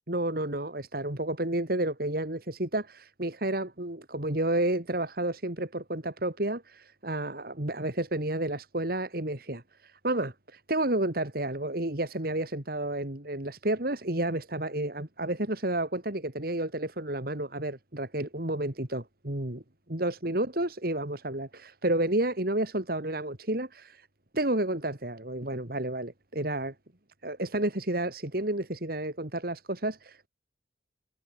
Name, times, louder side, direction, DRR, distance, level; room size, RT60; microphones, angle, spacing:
voice 1, 0.1-19.6 19.9-24.1 24.3-26.7 27.2-30.3, right 1 dB, 55° right, 2.8 m, -31 dB
head